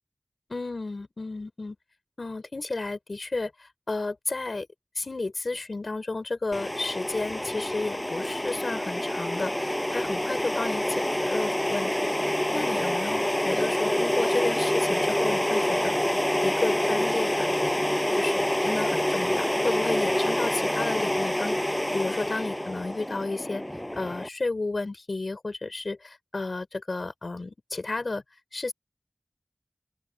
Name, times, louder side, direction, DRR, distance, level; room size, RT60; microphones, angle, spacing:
voice 1, 0.5-1.8 2.2-4.7 5.0-16.0 16.4-17.8 18.1-23.6 23.9-28.2 28.5-28.7, left 3 dB, 90° left, 5.7 m, -32 dB
sound 1, 6.5-24.3, left 1 dB, 20° left, 7.7 m, -27 dB
open air
wide cardioid pair, 40°, 0 cm